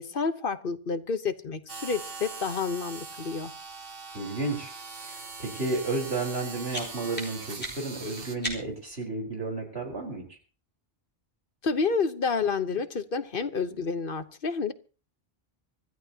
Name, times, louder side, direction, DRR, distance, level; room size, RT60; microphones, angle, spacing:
voice 1, 0.0-3.5 11.6-14.7, left 5 dB, 60° left, 11 dB, 1.2 m, -29 dB
sound 1, 1.7-8.4, right 4 dB, 65° right, 1.5 m, -41 dB
voice 2, 4.1-4.7 5.1-10.2, right 3 dB, 85° right, 1 dB, 4.8 m, -32 dB
sound 2, 6.3-9.0, equal, 10° left, 3.9 m, -39 dB
25.5 x 13.5 x 2.9 m, 0.35 s
omnidirectional pair, 1.0 m